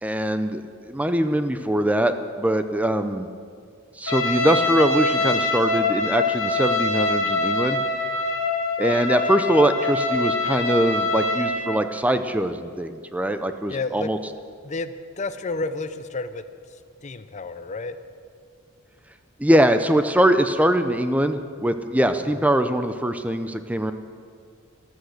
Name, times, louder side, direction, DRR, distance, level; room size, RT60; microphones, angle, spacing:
voice 1, 0.0-3.3 4.0-7.8 8.8-14.2 19.4-23.9, right 1 dB, 5° right, 9 dB, 0.5 m, -22 dB
Trumpet, 4.1-11.7, left 2 dB, 65° left, 2.0 m, -24 dB
voice 2, 13.7-14.1 14.6-16.4 17.0-18.0, left 3 dB, 35° left, 12 dB, 0.6 m, -30 dB
14.0 x 13.0 x 6.5 m, 2.1 s
head